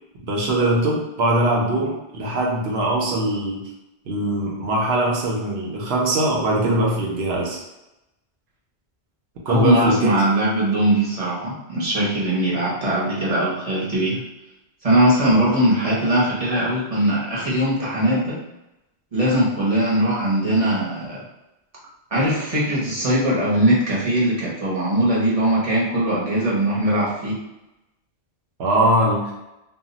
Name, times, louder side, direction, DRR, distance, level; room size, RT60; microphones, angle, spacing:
voice 1, 0.2-3.6 4.1-7.6 9.4-10.1 15.2-15.4 28.6-29.3, right 1 dB, 70° right, -2 dB, 0.8 m, -21 dB
voice 2, 9.5-14.2 14.8-18.4 19.1-21.2 22.1-27.4, right 1 dB, 35° right, -6 dB, 0.7 m, -20 dB
2.3 x 2.0 x 3.7 m, 0.94 s
omnidirectional pair, 1.2 m